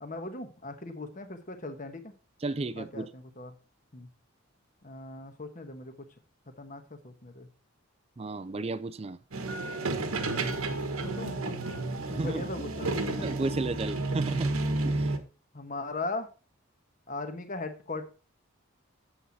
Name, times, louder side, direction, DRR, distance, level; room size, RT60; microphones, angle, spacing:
voice 1, 0.0-2.1 2.8-3.5 3.9-4.1 4.8-5.9 6.6-7.5 11.0-11.6 12.1-13.3 15.5-16.3 17.1-18.1, left 2 dB, 40° left, 1.3 m, -39 dB
voice 2, 2.4-3.1 8.2-9.2 12.1-12.4 13.2-14.5 14.8-15.1, right 2 dB, 30° right, 0.4 m, -33 dB
sound 1, 9.3-15.2, right 2 dB, 85° right, 1.3 m, -31 dB
7.9 x 7.8 x 4.1 m
head